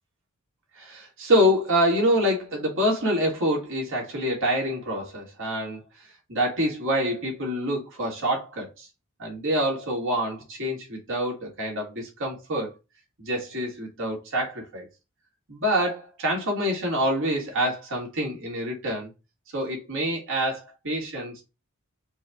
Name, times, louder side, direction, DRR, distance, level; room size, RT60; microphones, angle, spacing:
voice 1, 0.8-5.8 6.3-8.9 9.2-12.7 13.2-14.9 15.5-19.1 19.5-21.4, equal, 60° right, 2.0 m, -26 dB
4.7 x 2.3 x 4.0 m
head